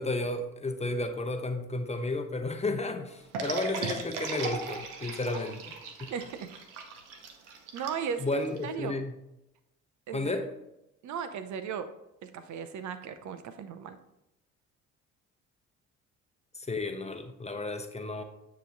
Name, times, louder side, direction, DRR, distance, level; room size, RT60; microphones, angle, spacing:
voice 1, 0.0-5.6 6.0-6.1 8.2-9.1 10.1-10.5 16.5-18.2, left 2 dB, 20° left, 5 dB, 0.9 m, -32 dB
sound 1, 3.3-8.7, right 4 dB, 85° right, 0.9 m, -37 dB
voice 2, 7.7-9.0 10.1-10.3 11.0-11.9 12.2-14.0, right 7 dB, 55° right, 10 dB, 0.6 m, -36 dB
9.3 x 3.1 x 3.9 m, 0.87 s
hypercardioid pair, 55°, 35 cm